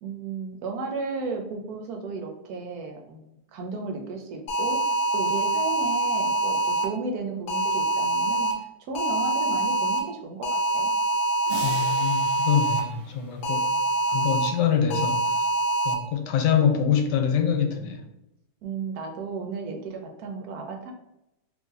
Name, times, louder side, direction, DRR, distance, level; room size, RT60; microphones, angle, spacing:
voice 1, 0.0-3.3 3.5-10.9 18.6-20.9, right 4 dB, 70° right, 1.0 m, -34 dB
sound 1, 4.5-6.9 7.5-8.5 8.9-10.0 10.4-12.8 13.4-14.5 14.9-15.9, right 2 dB, 60° left, 1.0 m, -25 dB
sound 2, 11.5-14.0, right 3 dB, 45° right, 1.0 m, -41 dB
voice 2, 11.6-13.7 14.1-15.2 15.8-18.0, left 7 dB, 85° left, 1.2 m, -24 dB
2.9 x 2.6 x 3.6 m
omnidirectional pair, 1.9 m